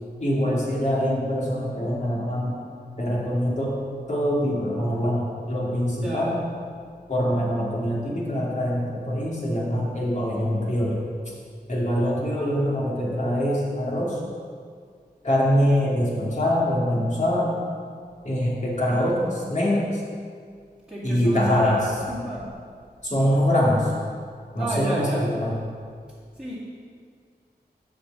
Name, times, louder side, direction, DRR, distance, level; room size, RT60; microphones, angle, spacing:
voice 1, 0.2-2.6 3.0-3.7 4.1-6.4 7.1-11.0 11.7-14.2 15.2-17.6 18.2-20.0 21.0-22.0 23.0-23.9 24.5-25.6, equal, 45° left, -5 dB, 2.3 m, -24 dB
voice 2, 6.0-6.3 20.9-22.5 24.6-25.3 26.4-26.6, right 1 dB, 5° right, -9 dB, 2.0 m, -31 dB
7.3 x 4.4 x 6.9 m, 2.1 s
cardioid pair, 55°, 17 cm